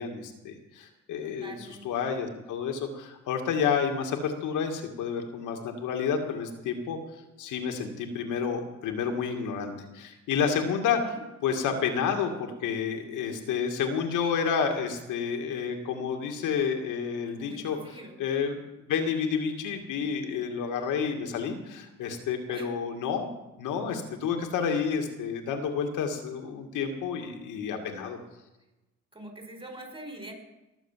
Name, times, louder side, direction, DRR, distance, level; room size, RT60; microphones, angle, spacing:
voice 1, 0.0-1.6 1.8-7.0 7.4-11.2 11.4-18.6 18.9-23.3 23.6-28.2, left 6 dB, 90° left, 4 dB, 2.3 m, -30 dB
voice 2, 1.2-2.1 11.0-11.2 17.3-18.2 22.5-22.7 29.1-30.3, right 1 dB, 20° right, 4 dB, 4.7 m, -44 dB
19.5 x 7.2 x 7.5 m, 0.99 s
cardioid pair, 90°, 30 cm